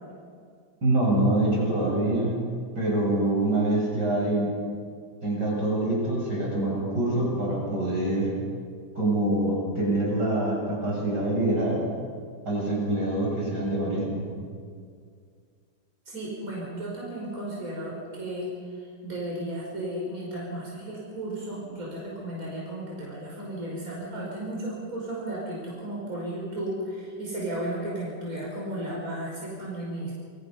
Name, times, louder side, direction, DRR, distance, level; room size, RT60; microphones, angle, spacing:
voice 1, 0.8-2.3 2.8-4.5 5.2-8.3 8.9-11.8 12.4-14.3, right 1 dB, 80° right, -3 dB, 8.3 m, -25 dB
voice 2, 16.1-18.5 19.0-30.1, right 1 dB, 55° right, -5 dB, 5.9 m, -34 dB
28.0 x 23.0 x 5.6 m, 2.1 s
omnidirectional pair, 1.8 m